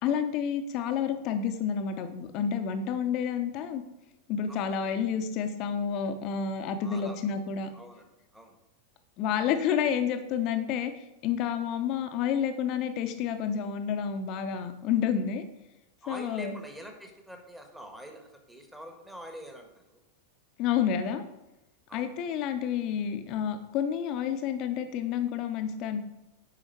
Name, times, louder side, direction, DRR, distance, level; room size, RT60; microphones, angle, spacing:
voice 1, 0.0-3.8 4.3-7.7 9.2-15.4 16.1-16.5 20.6-21.2 21.9-26.0, left 8 dB, 40° left, 7 dB, 0.9 m, -29 dB
voice 2, 4.5-4.8 6.8-7.2 7.7-8.6 16.0-20.0 21.9-22.2, equal, 5° right, 3 dB, 1.4 m, -46 dB
10.0 x 4.9 x 4.5 m, 0.95 s
figure-of-eight pair, 90°, 0 cm